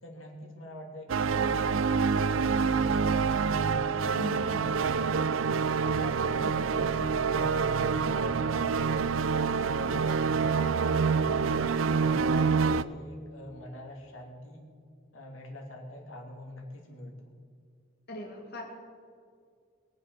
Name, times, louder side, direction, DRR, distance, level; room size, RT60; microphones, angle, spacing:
voice 1, 0.0-5.2 5.8-8.1 8.4-8.9 9.5-11.4 11.9-14.6 15.1-17.3, left 1 dB, 85° left, 0 dB, 3.0 m, -45 dB
sound 1, 1.1-12.8, right 5 dB, 80° right, 0.5 m, -27 dB
voice 2, 4.1-4.5 6.4-6.7 18.1-18.6, left 1 dB, 55° left, -2 dB, 2.3 m, -40 dB
22.0 x 7.6 x 6.8 m, 2.2 s
head